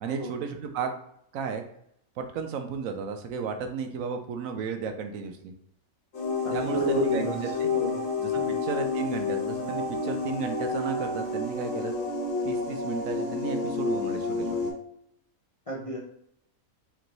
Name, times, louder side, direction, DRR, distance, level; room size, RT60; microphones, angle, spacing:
voice 1, 0.0-0.9 1.3-1.6 2.2-5.5 6.5-7.7 8.2-8.3 8.6-11.9 12.4-14.7, right 6 dB, 75° right, 5 dB, 1.0 m, -33 dB
sound 1, 6.1-14.7, left 3 dB, 60° left, 1.4 m, -30 dB
voice 2, 6.4-7.9 8.3-8.6 15.7-16.0, equal, 40° left, -3 dB, 0.5 m, -31 dB
3.4 x 3.1 x 3.9 m, 0.71 s
omnidirectional pair, 1.5 m